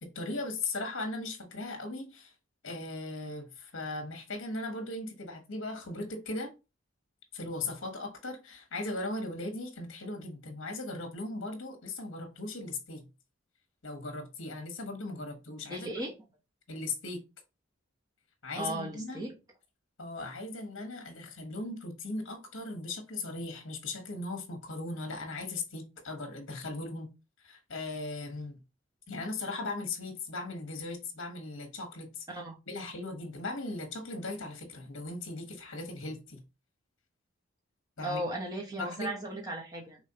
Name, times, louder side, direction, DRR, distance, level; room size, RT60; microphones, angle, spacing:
voice 1, 0.0-2.3 2.6-6.5 7.3-13.1 13.8-15.9 16.7-17.2 18.4-19.2 20.0-27.1 27.4-28.6 29.1-32.2 32.7-36.4 38.0-38.2 38.8-39.1, left 2 dB, 65° left, 1.2 m, -38 dB
voice 2, 15.7-16.1 18.5-19.4 32.3-32.5 38.0-40.0, right 1 dB, 20° right, 0.9 m, -36 dB
4.8 x 3.0 x 2.8 m
head